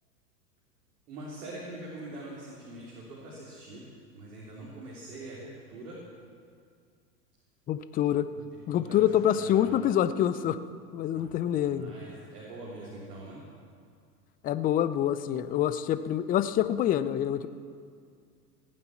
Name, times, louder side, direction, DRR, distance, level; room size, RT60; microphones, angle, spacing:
voice 1, 1.1-3.9 4.1-6.0 8.4-8.5 8.7-9.8 11.1-13.4, right 2 dB, 65° right, -5 dB, 3.6 m, -44 dB
voice 2, 7.7-8.3 8.7-10.6 10.9-11.9 14.4-17.5, left 11 dB, 20° left, 13 dB, 0.5 m, -26 dB
17.5 x 9.6 x 7.3 m, 2.2 s
hypercardioid pair, 100°, 48 cm